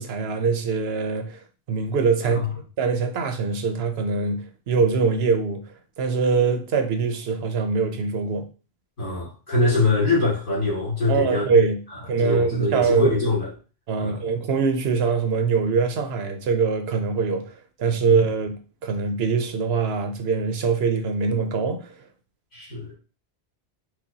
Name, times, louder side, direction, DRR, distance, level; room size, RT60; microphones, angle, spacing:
voice 1, 0.0-1.4 1.7-2.4 2.8-5.6 6.0-8.5 11.1-11.8 12.1-13.2 13.9-21.9, right 5 dB, 75° right, 0.9 m, -23 dB
voice 2, 9.0-11.6 12.2-13.5 14.0-14.2 22.5-23.0, left 2 dB, 55° left, 2.3 m, -23 dB
6.1 x 2.3 x 2.7 m
omnidirectional pair, 1.1 m